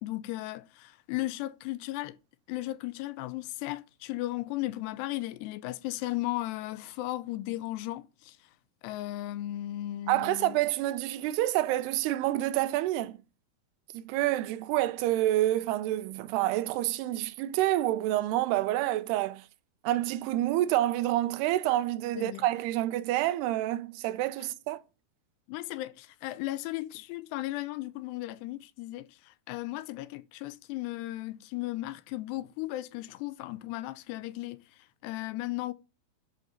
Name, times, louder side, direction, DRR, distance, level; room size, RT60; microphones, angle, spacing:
voice 1, 0.0-2.2 2.5-8.4 8.8-10.6 22.2-22.5 25.5-34.6 35.0-35.7, left 17 dB, 90° left, 2.8 m, -36 dB
voice 2, 10.1-13.2 13.9-19.4 19.8-24.8, right 15 dB, 85° right, 2.7 m, -28 dB
10.5 x 5.0 x 5.5 m
omnidirectional pair, 4.7 m